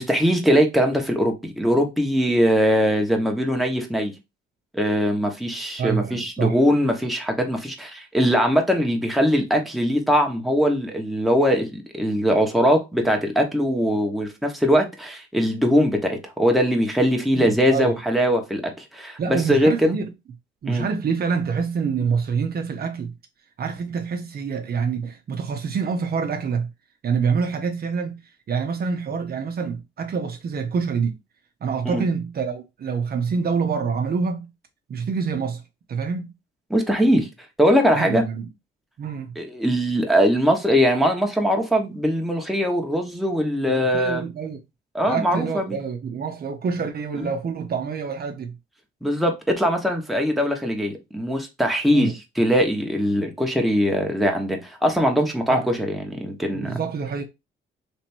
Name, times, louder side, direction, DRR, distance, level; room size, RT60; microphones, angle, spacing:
voice 1, 0.0-4.1 4.7-20.0 20.6-20.8 31.8-32.0 36.7-37.3 37.6-38.2 39.4-44.2 44.9-45.8 47.2-47.3 49.0-56.8, equal, ahead, 1.2 m, -21 dB
voice 2, 5.8-6.6 17.3-18.0 19.2-20.1 20.6-23.1 23.6-26.7 27.0-28.2 28.5-31.2 31.6-34.5 34.9-35.6 35.9-36.3 37.9-38.5 39.0-39.4 43.7-44.6 45.1-48.6 51.9-52.1 55.5-55.7 56.5-57.2, right 5 dB, 50° right, 0.8 m, -26 dB
3.4 x 2.9 x 4.4 m
cardioid pair, 90°, 20 cm